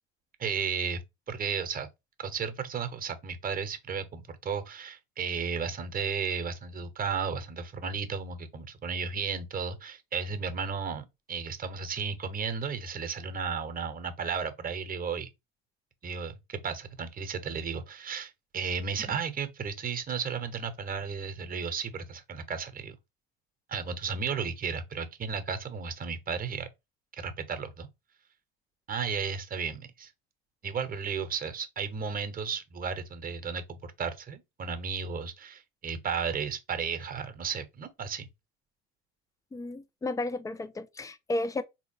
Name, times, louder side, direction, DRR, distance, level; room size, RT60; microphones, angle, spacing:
voice 1, 0.4-1.9 2.2-15.3 16.0-23.0 23.7-26.7 27.2-27.9 28.9-30.1 30.6-38.3, right 6 dB, 25° right, 0.8 m, -34 dB
voice 2, 39.5-41.6, left 2 dB, 10° left, 0.3 m, -33 dB
3.6 x 2.8 x 2.6 m
supercardioid pair, 90°, 32 cm